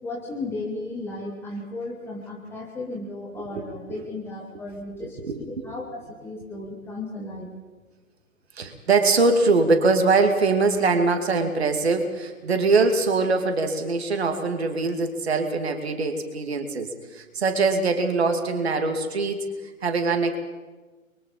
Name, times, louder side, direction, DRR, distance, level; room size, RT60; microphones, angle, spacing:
voice 1, 0.0-7.5, left 2 dB, 5° left, -2 dB, 1.3 m, -35 dB
voice 2, 4.9-5.7 8.6-19.5 19.8-20.4, right 3 dB, 50° right, 5 dB, 2.6 m, -23 dB
30.0 x 22.5 x 4.2 m, 1.3 s
figure-of-eight pair, 130°, 42 cm